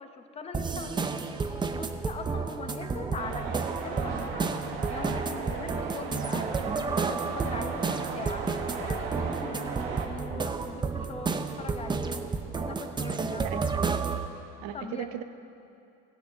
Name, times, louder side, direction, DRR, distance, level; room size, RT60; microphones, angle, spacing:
voice 1, 0.0-12.3 12.5-13.4 14.7-15.1, left 4 dB, 20° left, 7 dB, 0.8 m, -41 dB
sound 1, 0.5-14.3, right 4 dB, 15° right, 0.5 m, -31 dB
sound 2, 3.2-10.1, right 5 dB, 85° right, 1.6 m, -37 dB
voice 2, 13.4-13.9 14.6-15.2, right 11 dB, 65° right, 10 dB, 0.9 m, -37 dB
17.0 x 8.4 x 5.7 m, 2.6 s
cardioid pair, 130°, 30 cm